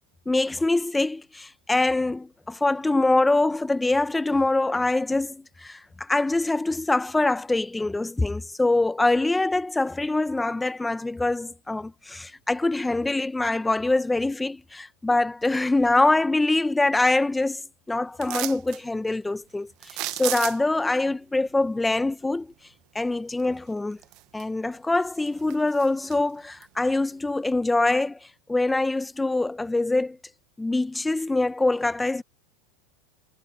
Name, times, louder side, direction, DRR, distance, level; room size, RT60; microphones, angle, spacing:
voice 1, 0.3-17.6 17.9-22.5 22.9-24.0 24.3-28.2 28.5-30.2 30.6-32.2, left 2 dB, 10° left, 1.2 m, -24 dB
sound 1, 18.2-18.8 19.8-20.8 23.4-23.5 24.0-24.7 25.0-26.2 26.6-26.7, right 20 dB, 55° right, 1.4 m, -33 dB
hypercardioid pair, 100°, 0 cm